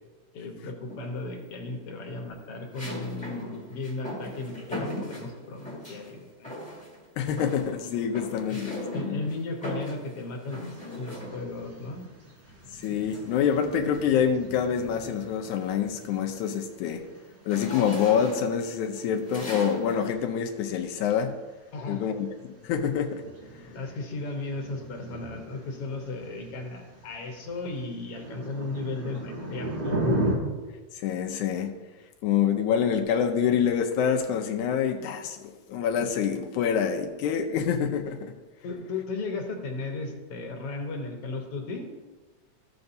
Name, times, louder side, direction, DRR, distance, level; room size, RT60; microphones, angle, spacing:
voice 1, 0.3-6.5 8.5-8.6 8.9-12.0 21.7-22.0 23.7-30.2 38.6-41.9, left 3 dB, 60° left, 2 dB, 1.9 m, -35 dB
sound 1, 0.9-1.4 2.7-6.1 6.4-7.0 7.3-11.7 12.8-14.2 14.7-15.0 15.3-20.1, left 1 dB, 5° left, 1.4 m, -39 dB
voice 2, 7.2-9.2 12.7-17.0 17.5-21.3 21.9-22.3 22.6-23.2 30.9-31.7 32.2-35.4 35.7-38.3, left 8 dB, 90° left, 3 dB, 2.1 m, -26 dB
sound 2, 10.5-30.3, right 1 dB, 80° right, 0.4 m, -38 dB
14.0 x 7.0 x 2.7 m, 1.3 s
omnidirectional pair, 3.4 m